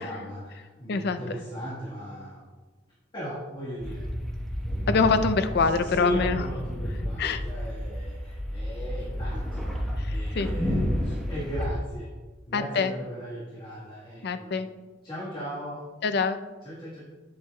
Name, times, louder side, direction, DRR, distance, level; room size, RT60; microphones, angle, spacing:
voice 1, 0.0-2.4 3.1-4.0 5.6-12.1 12.5-14.6 15.0-15.8 16.6-17.1, equal, 25° left, -8 dB, 1.4 m, -37 dB
voice 2, 0.9-1.2 4.9-6.4 7.2-7.4 10.0-10.5 12.5-12.9 14.2-14.7 16.0-16.4, left 4 dB, 60° left, 10 dB, 0.4 m, -25 dB
sound 1, 3.8-11.7, equal, ahead, 1.0 m, -31 dB
8.8 x 7.6 x 2.2 m, 1.3 s
head